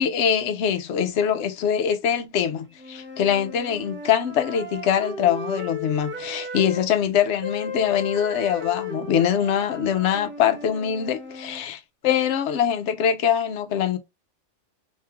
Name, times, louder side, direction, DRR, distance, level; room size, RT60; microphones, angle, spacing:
voice 1, 0.0-14.0, left 9 dB, 70° left, 0.9 m, -23 dB
sound 1, 2.8-6.9 7.4-11.6, left 2 dB, 15° right, 0.5 m, -35 dB
3.1 x 2.8 x 3.3 m
omnidirectional pair, 1.3 m